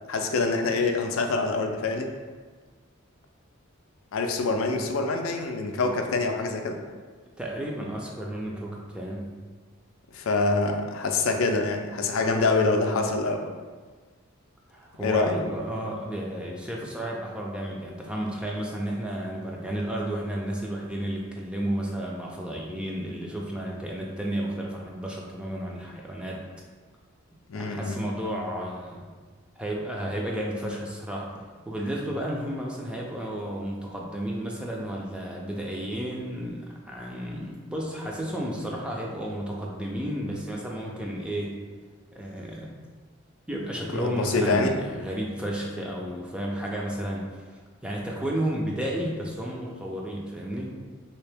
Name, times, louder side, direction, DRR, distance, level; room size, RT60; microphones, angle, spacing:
voice 1, 0.1-2.1 4.1-6.8 10.1-13.6 15.0-15.3 27.5-28.0 43.9-44.7, left 3 dB, 75° left, 4 dB, 0.4 m, -25 dB
voice 2, 7.4-9.4 14.7-26.4 27.5-29.1 29.6-31.3 31.7-41.6 42.1-42.7 43.5-47.3 47.8-50.7, right 1 dB, 5° right, -3 dB, 0.4 m, -32 dB
3.3 x 2.8 x 3.4 m, 1.4 s
head